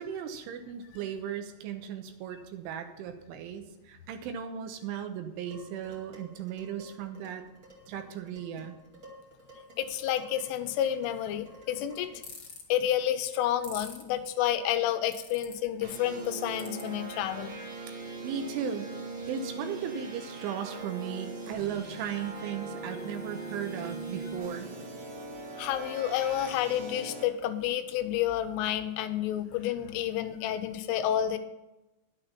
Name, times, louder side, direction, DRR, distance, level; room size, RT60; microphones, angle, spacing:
voice 1, 0.0-7.4 7.9-8.8 18.0-24.7, right 8 dB, 75° right, 6 dB, 3.3 m, -37 dB
Dishes pots and pans, 5.5-12.4, equal, 30° right, 1.3 m, -53 dB
voice 2, 9.8-12.1 12.7-17.6 25.6-31.4, left 11 dB, 80° left, 9 dB, 3.2 m, -30 dB
sound 1, 12.2-12.6 13.6-14.0 15.1-15.5 16.6-16.8, left 6 dB, 65° left, 1.5 m, -42 dB
sound 2, 15.8-27.2, right 3 dB, 50° right, 2.3 m, -40 dB
11.5 x 8.3 x 5.7 m, 1.0 s
omnidirectional pair, 5.8 m